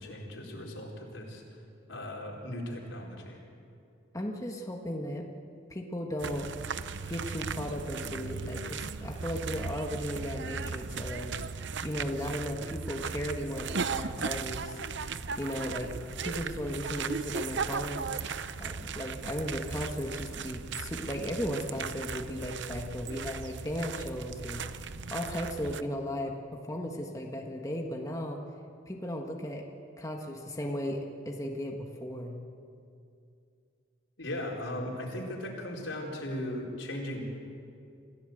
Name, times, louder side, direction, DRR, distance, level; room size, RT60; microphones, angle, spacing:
voice 1, 0.0-1.4 1.9-3.4 34.2-37.2, left 1 dB, 85° left, -1 dB, 4.5 m, -37 dB
voice 2, 4.1-5.3 5.7-6.5 7.0-11.4 11.8-14.8 15.4-15.9 16.2-18.1 18.6-24.6 25.1-28.4 28.9-29.6 30.0-32.4, equal, 20° left, 1 dB, 1.6 m, -36 dB
sound 1, 6.2-25.8, right 5 dB, 65° right, 0.8 m, -37 dB
27.0 x 16.0 x 7.9 m, 2.5 s
head